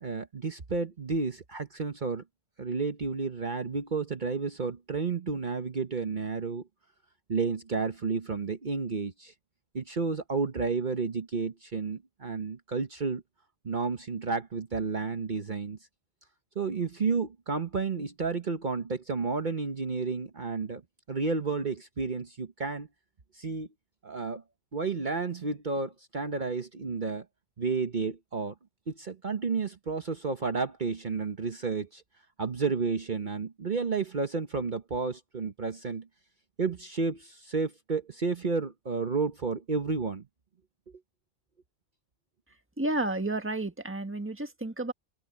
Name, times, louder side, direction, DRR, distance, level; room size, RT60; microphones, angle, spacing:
voice 1, 0.0-2.2 2.6-6.6 7.3-9.3 9.7-13.2 13.6-15.8 16.5-20.8 21.1-22.9 23.3-23.7 24.0-24.4 24.7-27.2 27.6-28.5 28.9-32.0 32.4-36.1 36.6-40.3, right 4 dB, 50° right, 1.2 m, -31 dB
voice 2, 42.8-44.9, right 2 dB, 10° right, 1.5 m, -31 dB
omnidirectional pair, 1.1 m